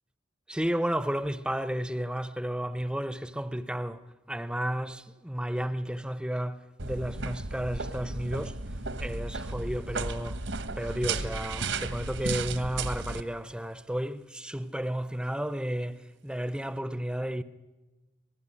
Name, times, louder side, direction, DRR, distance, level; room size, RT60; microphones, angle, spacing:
voice 1, 0.5-4.0 4.3-8.5 9.0-10.4 10.8-17.4, equal, 5° right, 0.7 m, -32 dB
sound 1, 6.8-13.2, right 3 dB, 70° right, 1.4 m, -34 dB
26.5 x 19.0 x 9.9 m
head